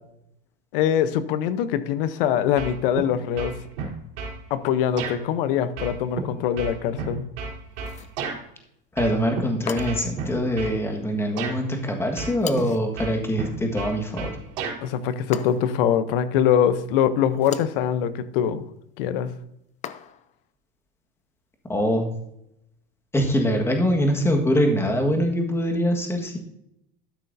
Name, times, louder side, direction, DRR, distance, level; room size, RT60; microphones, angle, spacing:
voice 1, 0.7-3.5 4.5-7.2 14.8-18.6 19.0-19.3, left 9 dB, 70° left, 14 dB, 0.9 m, -23 dB
sound 1, 2.6-3.1 3.4-4.4 5.0-5.2 5.8-8.4 9.0-9.4 9.8-10.8 11.4-11.6 12.2-12.7 13.0-14.8, right 5 dB, 75° right, 3.3 m, -32 dB
sound 2, 7.8-8.2 9.7-10.2 12.4-12.9 15.3-15.9 17.3-17.8 19.8-20.4, left 10 dB, 25° left, 0.5 m, -38 dB
voice 2, 8.9-14.4 21.7-22.1 23.1-26.4, equal, 10° left, 3 dB, 1.5 m, -23 dB
12.5 x 6.4 x 2.7 m, 0.80 s
supercardioid pair, 130°, 29 cm